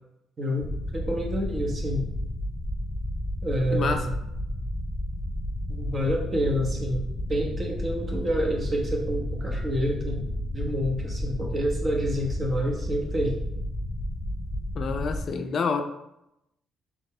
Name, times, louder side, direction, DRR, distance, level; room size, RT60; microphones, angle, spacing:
sound 1, 0.6-15.3, equal, 10° left, 0.7 m, -32 dB
voice 1, 0.9-2.1 3.4-4.1 5.7-7.0 7.3-13.4, equal, 35° right, 0 dB, 1.1 m, -28 dB
voice 2, 3.7-4.1 14.8-15.8, left 5 dB, 55° left, 6 dB, 0.4 m, -27 dB
4.1 x 3.5 x 3.3 m, 0.84 s
cardioid pair, 90°, 0 cm